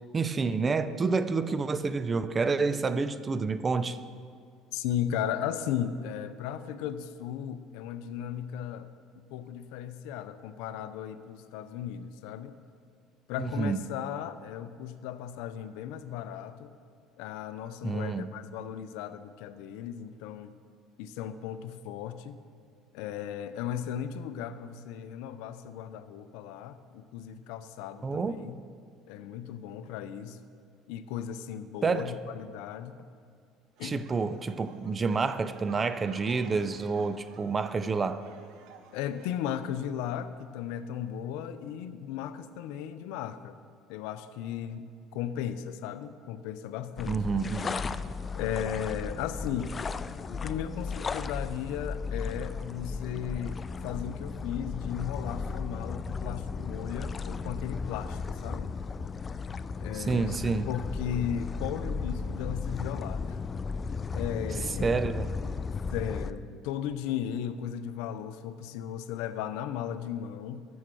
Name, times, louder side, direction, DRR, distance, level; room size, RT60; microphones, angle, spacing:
voice 1, 0.1-4.0 13.4-13.9 17.8-18.3 28.0-28.4 31.8-32.1 33.8-38.3 47.1-47.8 59.9-60.7 64.5-65.3, right 4 dB, 30° right, 0.6 m, -29 dB
voice 2, 4.7-8.9 9.2-12.6 13.3-16.7 17.2-20.6 21.0-22.4 22.9-28.6 29.1-30.4 30.9-33.0 33.8-34.1 38.9-43.6 43.9-47.2 48.4-49.7 50.2-58.7 59.8-60.4 60.7-63.4 64.1-64.9 65.9-70.7, left 9 dB, 80° left, 0.6 m, -36 dB
sound 1, 33.8-39.4, right 6 dB, 75° right, 1.0 m, -53 dB
sound 2, 47.0-66.3, left 4 dB, 30° left, 0.4 m, -35 dB
14.0 x 6.4 x 6.1 m
supercardioid pair, 95°, 0 cm